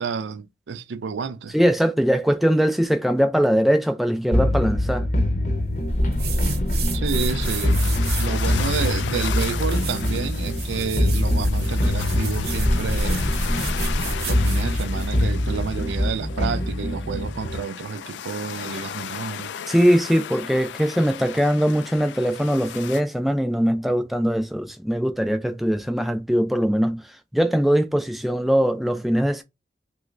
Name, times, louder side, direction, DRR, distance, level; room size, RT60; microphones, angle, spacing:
voice 1, 0.0-1.5 6.9-7.9 8.2-13.2 14.2-19.5, right 5 dB, 90° right, 0.4 m, -30 dB
voice 2, 1.5-5.1 19.7-27.0 27.3-29.4, equal, ahead, 0.3 m, -21 dB
sound 1, 4.3-17.6, left 1 dB, 45° left, 0.7 m, -23 dB
sound 2, 6.1-15.1, right 5 dB, 60° right, 0.8 m, -35 dB
sound 3, 7.1-23.0, left 9 dB, 80° left, 0.3 m, -36 dB
3.1 x 3.1 x 2.4 m
head